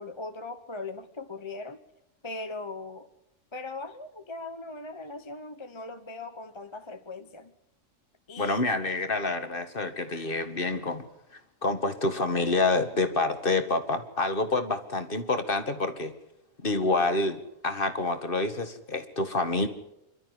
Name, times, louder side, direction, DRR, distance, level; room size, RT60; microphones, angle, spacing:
voice 1, 0.0-1.8 2.2-3.1 3.5-7.5 8.3-8.6, left 3 dB, 25° left, 8 dB, 1.1 m, -39 dB
voice 2, 8.4-11.0 11.6-16.1 16.6-19.7, left 3 dB, 40° left, 8 dB, 2.1 m, -27 dB
27.0 x 12.5 x 9.5 m, 0.85 s
omnidirectional pair, 1.4 m